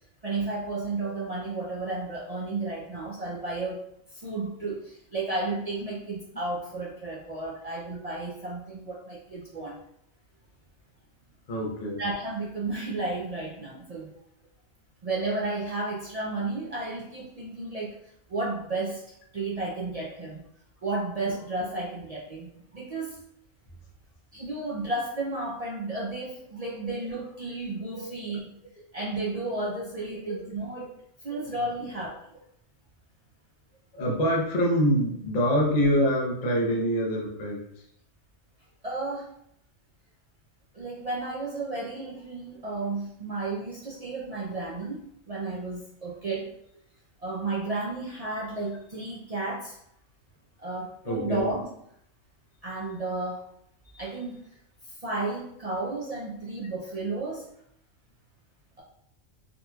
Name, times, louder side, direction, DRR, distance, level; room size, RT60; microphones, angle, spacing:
voice 1, 0.2-3.8 4.1-9.8 12.0-14.1 15.0-18.0 18.3-19.0 19.3-20.5 20.8-23.2 24.3-28.6 28.9-30.9 31.2-32.2 38.8-39.3 40.7-46.5 47.2-49.8 50.6-51.7 52.6-53.4 53.9-54.5 55.0-57.5, right 2 dB, 55° right, -4 dB, 0.4 m, -33 dB
voice 2, 11.5-12.0 27.9-28.2 30.1-30.4 33.9-37.6 51.1-51.5, equal, 40° left, -3 dB, 0.7 m, -25 dB
3.8 x 2.8 x 2.3 m, 0.72 s
omnidirectional pair, 1.3 m